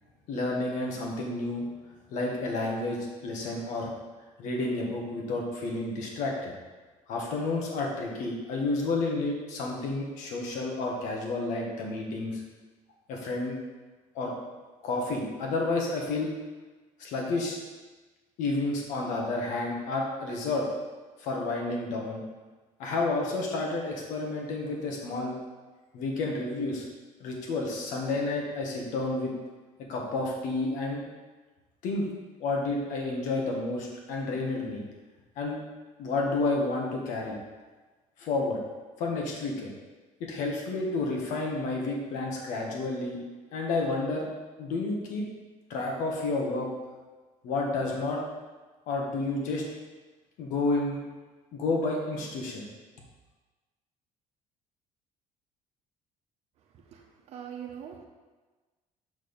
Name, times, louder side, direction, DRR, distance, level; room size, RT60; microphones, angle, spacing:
voice 1, 0.3-1.6 2.1-3.9 4.4-6.5 7.1-12.4 13.1-13.6 14.1-14.3 14.8-16.3 17.0-17.6 18.4-20.7 21.2-22.2 22.8-25.3 25.9-26.8 27.2-29.3 29.9-31.0 31.8-32.1 32.4-34.8 35.4-35.6 36.0-37.4 38.2-38.6 39.0-39.7 40.2-43.2 43.5-44.3 44.6-45.2 45.7-46.7 47.4-48.2 48.9-49.6 50.4-51.0 51.5-52.7, left 2 dB, 70° left, -1 dB, 1.5 m, -30 dB
voice 2, 56.7-58.0, right 8 dB, 55° right, 2 dB, 1.0 m, -43 dB
6.0 x 4.5 x 5.3 m, 1.3 s
cardioid pair, 165°, 13 cm